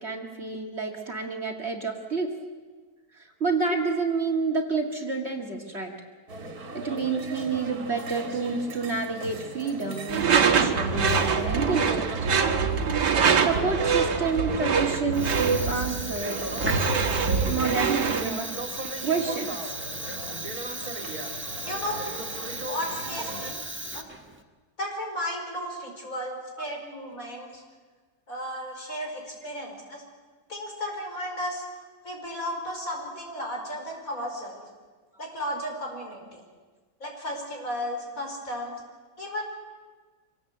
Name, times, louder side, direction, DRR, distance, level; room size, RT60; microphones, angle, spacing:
voice 1, 0.0-2.3 3.1-5.9 6.7-12.1 13.4-16.4 17.5-18.5 19.0-19.7 26.5-26.7 28.9-29.0 29.4-29.5, right 4 dB, 40° right, 1 dB, 2.1 m, -29 dB
sound 1, 6.3-23.5, right 2 dB, 60° right, 2.4 m, -38 dB
Door / Screech, 10.1-18.3, right 6 dB, 85° right, 2.0 m, -24 dB
Fire, 15.1-24.4, right 1 dB, 10° right, 1.1 m, -36 dB
voice 2, 21.6-22.0 22.7-23.6 23.9-24.0 24.8-27.6 28.3-30.0 30.5-31.6 32.0-34.6 35.2-36.4 37.0-38.8 39.2-39.4, equal, 50° left, 1 dB, 5.2 m, -34 dB
25.0 x 18.0 x 8.0 m, 1.4 s
omnidirectional pair, 1.8 m